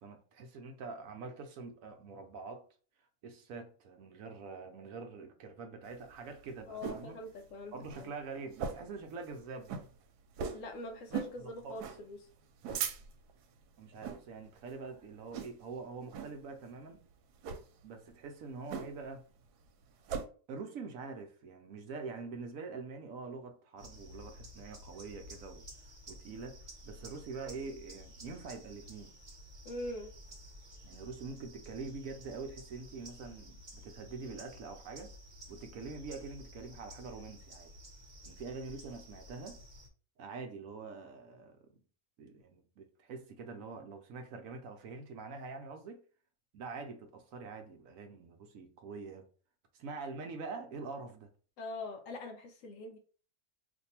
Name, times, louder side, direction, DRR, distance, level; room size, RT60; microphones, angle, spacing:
voice 1, 0.0-2.6 3.2-7.2 7.7-9.8 11.4-11.8 13.8-17.0 17.8-19.2 20.5-25.7 26.1-26.6 26.8-29.1 30.8-35.1 35.5-37.7 38.2-39.6 40.2-41.7 42.2-46.0 46.5-49.3 49.7-51.3, right 4 dB, 70° right, 0.9 m, -45 dB
sound 1, 5.9-7.1 7.5-7.6 7.8-8.1 8.5-9.0 9.3-9.4 9.7-9.9 10.4-10.7 11.1-11.4 11.8-12.0 12.4-13.3 13.9-14.2 14.6-14.9 15.3-15.7 16.1-16.4 17.3-17.6 18.7-19.2 19.5-20.3, right 7 dB, 90° right, 1.1 m, -39 dB
voice 2, 6.7-8.1 10.5-12.2 29.6-30.1 51.6-53.0, left 2 dB, 65° left, 0.9 m, -43 dB
sound 2, 23.8-39.9, equal, 35° right, 0.9 m, -52 dB
2.6 x 2.6 x 4.2 m
omnidirectional pair, 1.6 m